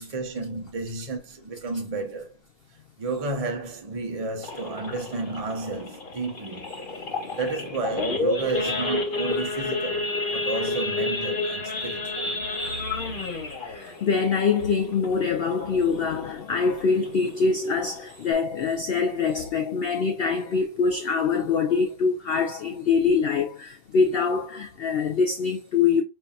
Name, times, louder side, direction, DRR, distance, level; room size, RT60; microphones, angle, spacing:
voice 1, 0.0-2.4 3.0-6.7 7.3-12.4, right 3 dB, 30° right, 0.8 m, -32 dB
Idling / Accelerating revving vroom / Sawing, 4.4-15.5 15.9-16.1 16.4-16.5 16.9-17.2 17.7-17.8 18.0-18.3, left 3 dB, 45° left, 1.1 m, -30 dB
voice 2, 13.6-26.0, left 5 dB, 60° left, 0.6 m, -24 dB
5.4 x 2.6 x 2.4 m
omnidirectional pair, 1.4 m